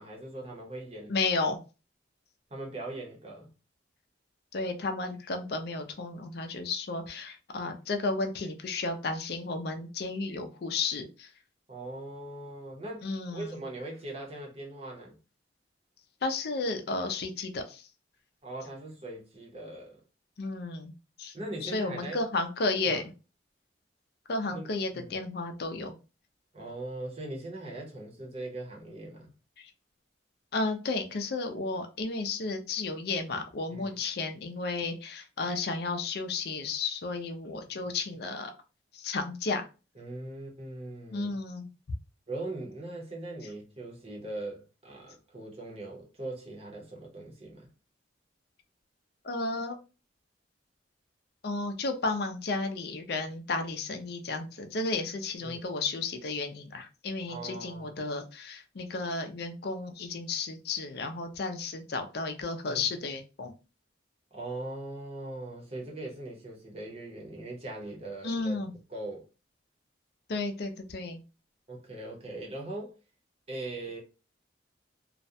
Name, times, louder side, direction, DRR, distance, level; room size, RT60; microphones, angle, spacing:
voice 1, 0.0-1.1 2.5-3.5 11.7-15.2 18.4-20.0 21.3-22.2 22.8-23.1 24.5-24.7 24.9-25.1 26.5-29.3 33.7-33.9 40.0-41.4 42.3-47.7 55.4-55.6 57.3-57.9 62.6-62.9 64.3-69.3 71.7-72.9 73.5-74.0, right 2 dB, 35° right, 0.7 m, -40 dB
voice 2, 1.1-1.6 4.5-11.3 13.0-13.6 16.2-17.9 20.4-20.9 21.2-21.3 21.6-23.1 24.3-26.0 29.6-29.7 30.5-38.5 38.9-39.7 41.1-41.7 49.2-49.8 51.4-63.5 68.2-68.7 70.3-71.2, left 3 dB, 60° left, 0.4 m, -33 dB
2.4 x 2.1 x 2.6 m
head